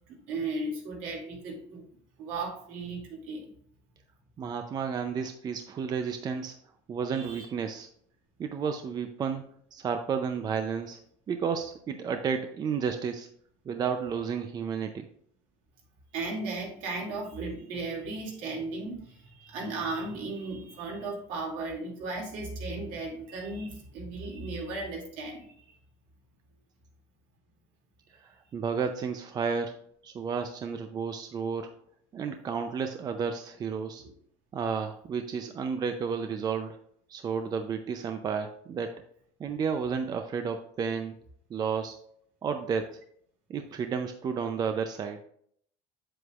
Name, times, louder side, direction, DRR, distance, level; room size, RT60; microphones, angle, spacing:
voice 1, 0.1-1.8 2.2-3.5 7.1-7.5 16.1-25.8, right 3 dB, 65° right, 0 dB, 2.5 m, -36 dB
voice 2, 4.4-6.6 6.9-7.9 8.4-11.0 11.3-13.3 13.7-15.1 28.2-29.8 30.0-31.7 32.1-34.0 34.5-36.8 37.1-39.0 39.4-41.1 41.5-42.0 42.4-43.0 43.5-45.2, right 6 dB, 30° right, 7 dB, 0.5 m, -32 dB
8.0 x 7.8 x 2.4 m, 0.65 s
cardioid pair, 130°, 14 cm